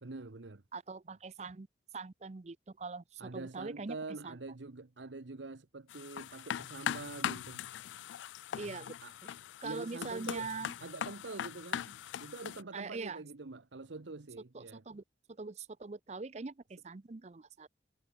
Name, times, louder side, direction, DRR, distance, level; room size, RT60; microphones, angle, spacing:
voice 1, 0.0-0.6 3.2-7.7 9.0-9.1 9.6-10.5 10.8-14.8, right 3 dB, 85° right, 1.0 m, -45 dB
voice 2, 0.7-1.7 1.9-4.0 4.2-4.4 8.5-8.9 9.6-10.7 12.7-13.2 14.5-15.0 15.4-17.7, right 4 dB, 40° right, 0.5 m, -42 dB
sound 1, 5.9-12.6, left 9 dB, 85° left, 0.3 m, -40 dB
head